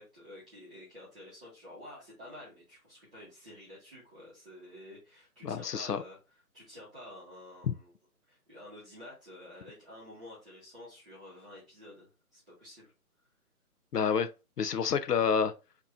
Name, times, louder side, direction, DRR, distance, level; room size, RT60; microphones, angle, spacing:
voice 1, 0.0-6.2 6.5-7.9 8.3-12.9, left 1 dB, 5° right, 0.8 m, -50 dB
voice 2, 5.4-6.0 7.6-7.7 13.9-14.3 14.6-15.5, left 6 dB, 85° left, 0.8 m, -28 dB
6.7 x 3.0 x 2.7 m
hypercardioid pair, 165°, 46 cm